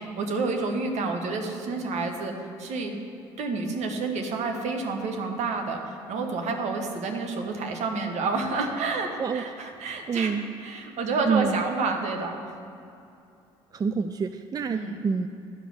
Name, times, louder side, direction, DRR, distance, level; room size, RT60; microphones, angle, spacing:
voice 1, 0.0-2.3 2.6-2.9 3.4-12.4 14.7-15.0, right 3 dB, 60° right, 4 dB, 1.4 m, -29 dB
voice 2, 10.1-10.4 11.3-11.6 13.7-15.3, right 5 dB, 30° right, 9 dB, 0.4 m, -27 dB
12.0 x 5.2 x 6.0 m, 2.6 s
hypercardioid pair, 65°, 13 cm